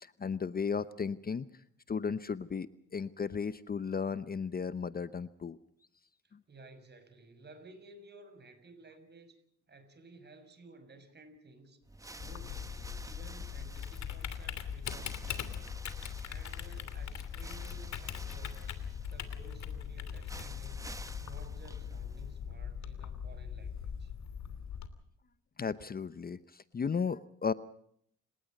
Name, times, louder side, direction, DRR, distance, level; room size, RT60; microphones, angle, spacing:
voice 1, 0.0-1.5 1.9-5.6 6.3-6.4 25.6-27.5, left 6 dB, 30° left, 15 dB, 0.8 m, -35 dB
voice 2, 6.2-9.4 9.7-11.8 12.2-20.8 21.2-24.3, right 2 dB, 35° right, 9 dB, 6.1 m, -55 dB
sound 1, 11.8-22.5, right 2 dB, 10° right, 1.5 m, -51 dB
Typing, 12.2-24.9, left 8 dB, 65° left, 3.0 m, -41 dB
29.5 x 18.5 x 5.4 m, 0.68 s
cardioid pair, 90°, 30 cm